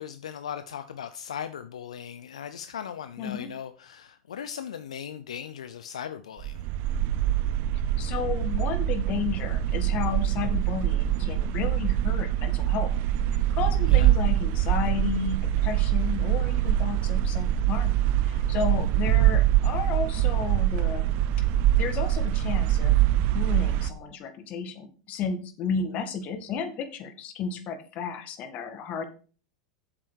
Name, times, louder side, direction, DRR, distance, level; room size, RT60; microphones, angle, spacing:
voice 1, 0.0-6.7 13.9-14.2 18.7-18.9, left 8 dB, 80° left, 0.6 m, -38 dB
voice 2, 3.2-3.5 8.0-12.9 13.3-18.0 18.2-21.1 21.4-21.5 21.8-29.0, left 6 dB, 45° left, 2.0 m, -32 dB
sound 1, 6.4-23.9, right 12 dB, 50° right, 0.7 m, -24 dB
8.0 x 7.6 x 4.6 m
hypercardioid pair, 95°, 3 cm